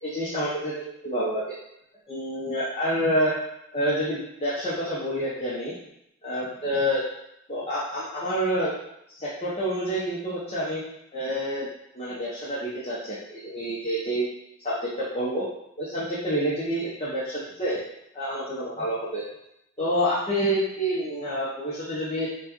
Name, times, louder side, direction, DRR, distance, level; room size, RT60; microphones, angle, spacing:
voice 1, 0.0-1.5 2.1-3.4 3.7-5.7 6.2-7.0 7.5-8.7 9.1-10.8 11.1-11.7 11.9-14.3 14.6-15.4 15.8-17.8 18.1-19.2 19.8-22.3, equal, 30° left, -9 dB, 0.8 m, -28 dB
5.8 x 2.3 x 3.0 m, 0.80 s
head